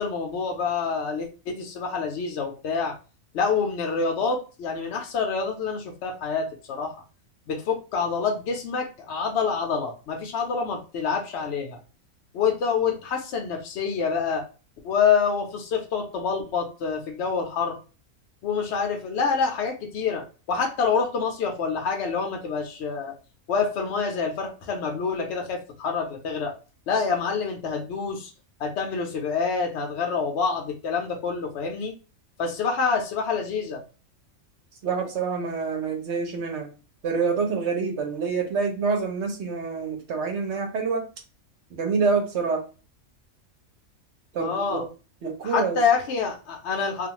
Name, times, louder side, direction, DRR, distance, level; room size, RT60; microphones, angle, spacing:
voice 1, 0.0-2.9 3.3-7.0 7.5-11.8 12.3-14.4 14.8-17.8 18.4-23.1 23.5-26.5 26.9-28.3 28.6-31.9 32.4-33.8 44.4-44.8 45.4-47.1, left 5 dB, 65° left, 2 dB, 0.7 m, -27 dB
voice 2, 34.8-36.7 37.0-41.1 41.7-42.6 44.3-44.9 45.2-45.8, right 5 dB, 60° right, 4 dB, 0.9 m, -27 dB
2.4 x 2.3 x 2.9 m, 0.33 s
omnidirectional pair, 1.5 m